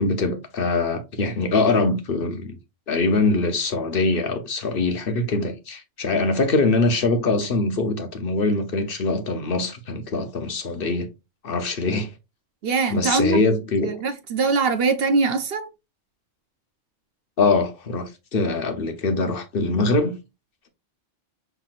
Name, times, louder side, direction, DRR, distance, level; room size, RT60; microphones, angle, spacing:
voice 1, 0.0-2.6 2.9-11.1 11.4-12.1 12.9-13.9 17.4-20.2, left 3 dB, 55° left, 0.9 m, -23 dB
voice 2, 12.6-13.4 13.8-15.7, right 4 dB, 60° right, 0.8 m, -22 dB
5.7 x 3.4 x 2.4 m
omnidirectional pair, 1.2 m